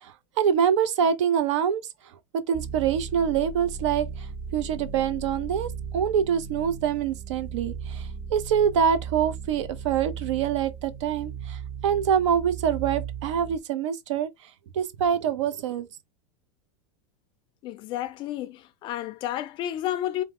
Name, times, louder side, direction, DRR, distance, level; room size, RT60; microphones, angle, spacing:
voice 1, 0.0-1.8 2.3-4.3 4.5-14.3 14.7-15.9, right 8 dB, 75° right, 0.7 m, -25 dB
sound 1, 2.5-13.6, right 6 dB, 30° right, 0.5 m, -37 dB
voice 2, 17.6-20.2, left 12 dB, 30° left, 0.4 m, -31 dB
4.5 x 2.1 x 3.6 m
supercardioid pair, 150°, 15 cm